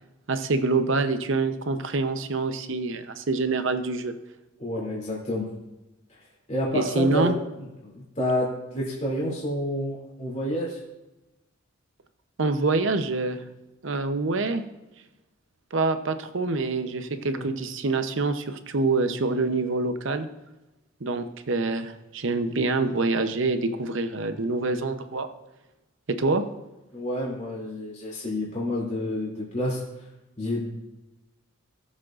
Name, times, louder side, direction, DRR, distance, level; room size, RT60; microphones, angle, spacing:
voice 1, 0.3-4.1 6.7-7.3 12.4-13.4 13.8-14.6 15.7-20.3 21.0-25.3 26.1-26.4, right 3 dB, 60° right, 9 dB, 0.7 m, -26 dB
voice 2, 4.6-5.5 6.1-6.2 6.5-10.8 17.3-17.5 26.9-29.8 30.4-30.6, left 1 dB, 35° left, -6 dB, 2.8 m, -29 dB
18.0 x 7.4 x 2.5 m, 1.0 s
head